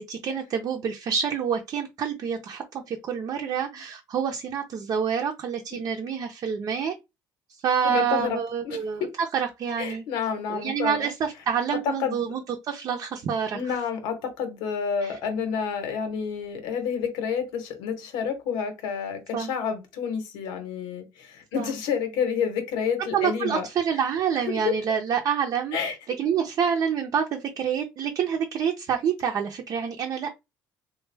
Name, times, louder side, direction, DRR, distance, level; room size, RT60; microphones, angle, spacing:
voice 1, 0.0-6.9 7.6-10.0 10.5-13.8 15.0-15.2 19.3-19.5 21.6-21.7 23.0-25.8 26.2-30.3, right 7 dB, 55° right, 0.7 m, -27 dB
voice 2, 3.4-3.8 5.7-5.8 7.8-8.4 8.6-9.1 9.8-11.1 11.8-12.2 13.5-23.7 24.5-24.7 25.7-26.0, left 7 dB, 90° left, 1.1 m, -29 dB
3.4 x 2.4 x 3.3 m
cardioid pair, 95°, 7 cm